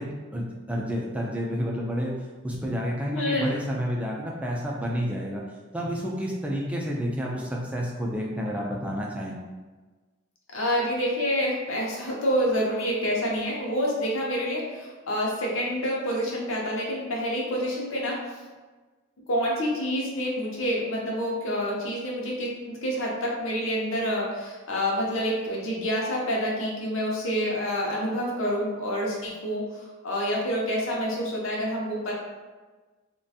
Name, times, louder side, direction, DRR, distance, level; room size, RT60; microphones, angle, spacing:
voice 1, 0.0-2.1 2.4-5.4 5.7-9.3, equal, 5° right, -3 dB, 0.3 m, -30 dB
voice 2, 3.1-3.5 10.5-18.2 19.3-32.1, equal, 75° left, -3 dB, 0.6 m, -28 dB
2.4 x 2.2 x 2.6 m, 1.3 s
head